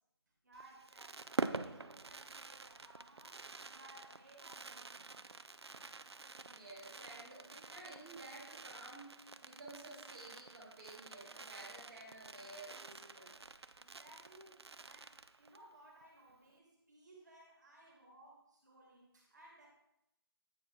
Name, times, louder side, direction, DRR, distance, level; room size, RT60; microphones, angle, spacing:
voice 1, 0.4-5.1 13.8-19.7, right 1 dB, 45° right, 0 dB, 1.7 m, -61 dB
Fireworks, 0.5-15.7 16.0-16.1 16.3-16.6, right 3 dB, 80° right, 0.5 m, -47 dB
voice 2, 6.5-13.3, right 2 dB, 15° right, -10 dB, 1.5 m, -53 dB
8.4 x 4.0 x 4.6 m, 0.84 s
figure-of-eight pair, 165°, 13 cm